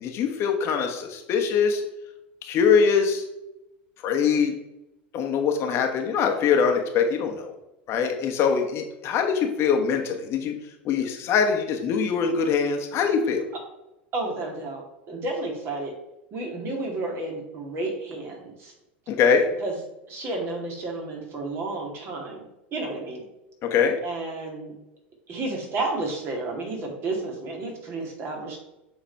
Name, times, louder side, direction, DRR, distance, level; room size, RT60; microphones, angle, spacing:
voice 1, 0.0-1.8 2.4-3.2 4.0-4.5 5.1-7.5 7.9-10.5 10.8-13.4 19.1-19.4 23.6-24.0, left 6 dB, 45° left, 4 dB, 1.1 m, -23 dB
voice 2, 14.1-14.8 15.1-15.9 16.3-18.7 19.6-19.7 20.1-22.4 22.7-23.3 24.0-24.7 25.3-28.6, right 2 dB, 40° right, 1 dB, 2.3 m, -31 dB
7.4 x 3.9 x 4.5 m, 0.90 s
hypercardioid pair, 85°, 6 cm